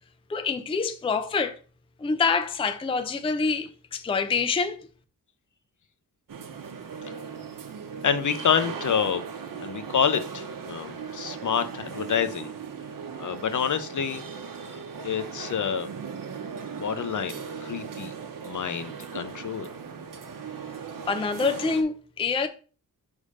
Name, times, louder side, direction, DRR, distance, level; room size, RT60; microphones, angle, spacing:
voice 1, 0.3-1.6 2.0-4.8 21.1-22.5, left 4 dB, 15° left, 0.4 m, -26 dB
sound 1, 6.3-21.8, right 6 dB, 65° right, 0.9 m, -38 dB
voice 2, 8.0-9.2 9.6-12.5 13.2-14.2 14.6-15.9 16.7-18.1 18.4-19.7, left 7 dB, 55° left, 0.7 m, -28 dB
5.4 x 3.6 x 4.9 m
wide cardioid pair, 160°, 36 cm